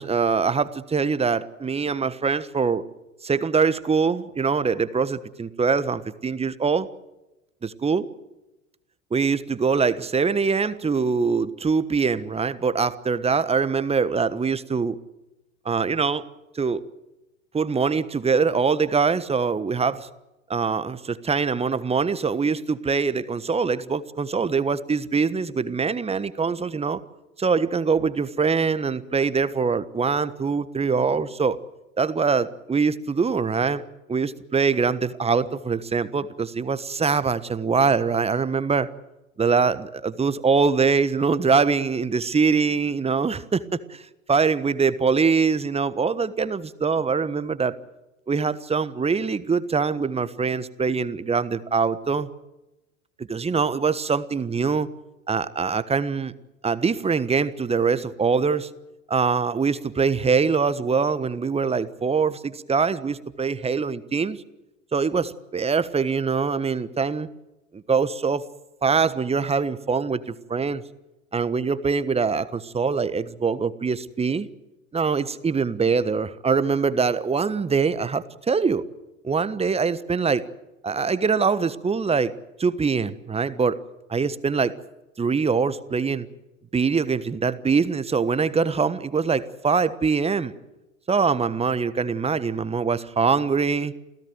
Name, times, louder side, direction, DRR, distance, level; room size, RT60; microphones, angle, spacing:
voice 1, 0.0-2.8 3.2-6.9 7.6-8.1 9.1-15.0 15.6-16.2 16.5-16.8 17.5-20.1 20.5-27.0 27.4-31.6 32.0-33.8 34.1-38.9 39.4-44.0 44.3-47.7 48.3-52.3 53.2-54.9 55.3-56.3 56.6-58.7 59.1-64.4 64.9-67.3 67.7-68.4 68.8-70.8 71.3-74.5 74.9-78.8 79.2-80.4 80.8-82.3 82.6-83.8 84.1-84.7 85.2-86.3 86.7-90.5 91.1-93.9, right 5 dB, 15° right, 15 dB, 1.3 m, -23 dB
28.0 x 16.5 x 7.7 m, 0.99 s
figure-of-eight pair, 75°, 37 cm